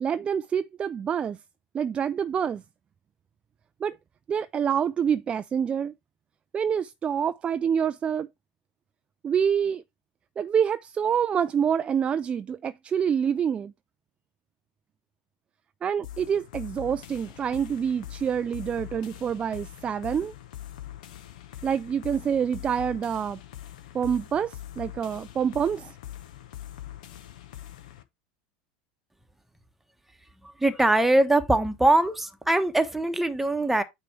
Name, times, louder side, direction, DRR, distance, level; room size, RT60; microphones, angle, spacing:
voice 1, 0.0-1.4 1.7-2.6 3.8-4.0 4.3-5.9 6.5-8.3 9.2-9.8 10.4-13.7 15.8-20.3 21.6-23.4 23.9-26.0, right 8 dB, 25° right, 0.3 m, -27 dB
sound 1, 16.0-28.0, left 12 dB, 65° left, 1.0 m, -43 dB
voice 2, 30.6-33.8, right 2 dB, 5° right, 1.1 m, -22 dB
9.1 x 3.1 x 4.6 m
figure-of-eight pair, 80°, 4 cm